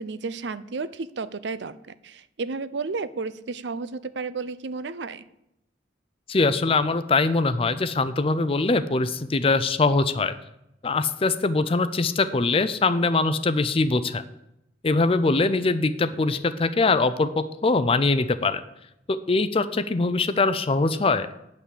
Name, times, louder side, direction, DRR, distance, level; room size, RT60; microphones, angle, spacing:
voice 1, 0.0-5.3, right 4 dB, 70° right, 16 dB, 0.6 m, -32 dB
voice 2, 6.3-10.3 10.8-14.2 14.8-18.6 19.1-21.3, left 3 dB, 30° left, 12 dB, 0.5 m, -22 dB
9.1 x 5.8 x 8.2 m, 0.83 s
head